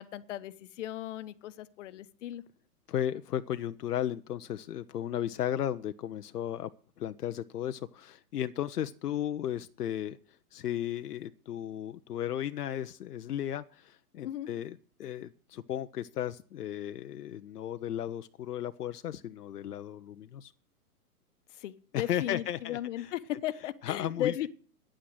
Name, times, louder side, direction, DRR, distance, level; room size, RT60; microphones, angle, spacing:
voice 1, 0.0-2.4 14.2-14.5 21.5-24.5, left 12 dB, 50° left, 12 dB, 1.1 m, -36 dB
voice 2, 2.9-6.7 7.0-10.2 10.5-20.5 21.9-23.1 23.8-24.4, left 11 dB, 80° left, 10 dB, 0.8 m, -35 dB
10.0 x 8.8 x 7.8 m, 0.43 s
hypercardioid pair, 135°, 46 cm